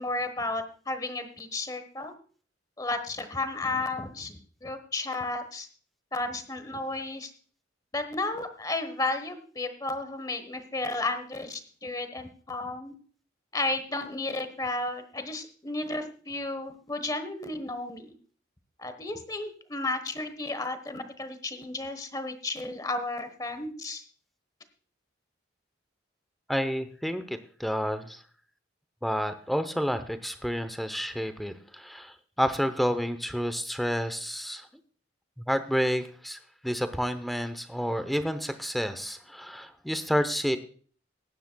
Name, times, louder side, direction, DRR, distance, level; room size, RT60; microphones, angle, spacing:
voice 1, 0.0-2.1 2.8-5.7 6.1-7.3 7.9-12.9 13.5-18.1 18.8-24.0, left 2 dB, 20° left, 9 dB, 1.2 m, -33 dB
voice 2, 26.5-28.2 29.0-34.7 35.4-40.6, equal, ahead, 10 dB, 0.7 m, -30 dB
19.5 x 10.0 x 2.3 m, 0.43 s
head